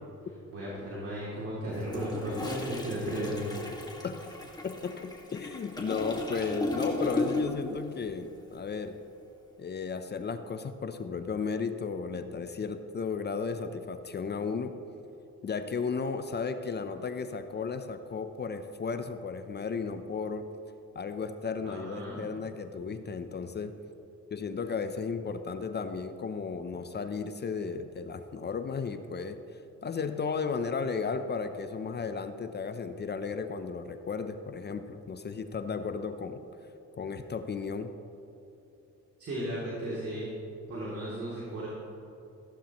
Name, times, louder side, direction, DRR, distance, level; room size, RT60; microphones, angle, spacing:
voice 1, 0.5-3.6 21.6-22.3 39.2-40.3 40.7-41.7, equal, 50° right, -6 dB, 2.7 m, -35 dB
Toilet flush, 1.7-7.7 8.0-8.2, left 2 dB, 15° left, 1.8 m, -35 dB
voice 2, 4.6-9.0 9.6-14.7 15.4-20.5 20.9-23.8 24.3-29.4 29.8-36.4 37.0-37.9, left 5 dB, 35° left, 8 dB, 0.6 m, -34 dB
15.0 x 11.5 x 3.0 m, 2.9 s
cardioid pair, 90°, 30 cm